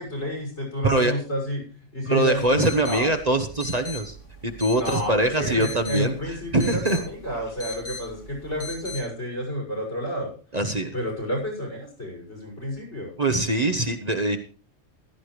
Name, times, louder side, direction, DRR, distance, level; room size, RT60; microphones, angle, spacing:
voice 1, 0.0-1.6 1.9-3.1 4.7-10.3 10.9-13.1, equal, 70° left, 0 dB, 7.0 m, -30 dB
voice 2, 2.1-4.2 4.4-7.0 10.5-10.9 13.2-14.4, right 2 dB, 35° right, 6 dB, 1.0 m, -23 dB
sound 1, 2.3-9.0, left 2 dB, 85° left, 3.2 m, -40 dB
15.5 x 12.5 x 3.3 m, 0.38 s
omnidirectional pair, 1.2 m